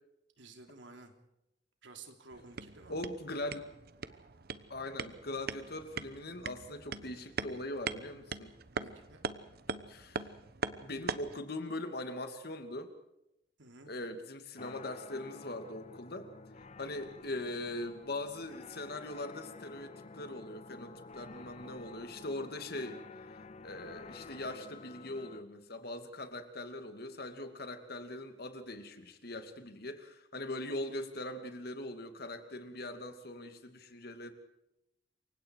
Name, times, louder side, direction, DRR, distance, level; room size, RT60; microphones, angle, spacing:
voice 1, 0.4-1.1 1.8-3.0 8.7-9.2 13.6-13.9, right 3 dB, 85° right, 5 dB, 3.4 m, -53 dB
Bottle and tree, 2.3-11.4, right 4 dB, 55° right, 1.0 m, -42 dB
voice 2, 2.9-3.6 4.7-8.5 9.9-10.3 10.8-12.9 13.9-16.3 16.8-23.0 23.6-34.3, left 1 dB, 60° left, 7 dB, 2.7 m, -41 dB
sound 1, 14.6-25.4, left 4 dB, 35° left, 0.7 m, -51 dB
28.5 x 24.0 x 4.9 m, 0.87 s
head